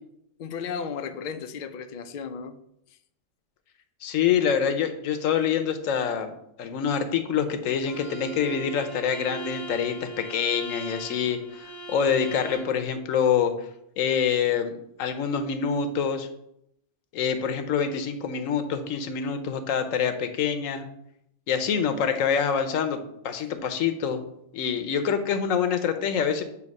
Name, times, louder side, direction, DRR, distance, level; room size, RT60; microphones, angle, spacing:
voice 1, 0.4-2.5, left 6 dB, 60° left, 8 dB, 0.5 m, -34 dB
voice 2, 4.0-13.5 14.0-16.3 17.1-20.9 21.5-23.0 23.2-24.2 24.5-26.4, left 7 dB, 90° left, 7 dB, 1.1 m, -26 dB
Bowed string instrument, 7.8-12.8, right 2 dB, 35° left, 1.8 m, -39 dB
8.1 x 2.8 x 5.3 m, 0.77 s
omnidirectional pair, 1.3 m